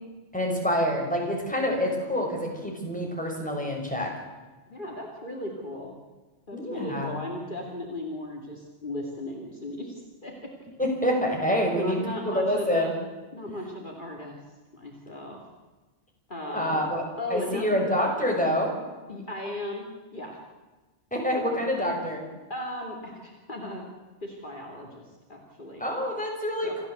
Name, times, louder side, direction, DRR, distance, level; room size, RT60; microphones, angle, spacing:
voice 1, 0.3-4.1 6.5-7.1 10.8-12.9 16.4-17.0 17.3-18.7 21.1-22.2 25.8-26.9, equal, 5° left, 0 dB, 5.6 m, -27 dB
voice 2, 4.7-6.0 6.5-10.5 11.7-12.9 13.3-14.4 14.7-15.4 16.3-16.8 17.2-17.9 19.1-20.4 21.4-21.9 22.5-23.8 24.2-25.8 26.6-26.8, left 1 dB, 45° left, 0 dB, 3.1 m, -36 dB
28.0 x 14.0 x 8.0 m, 1.2 s
omnidirectional pair, 1.2 m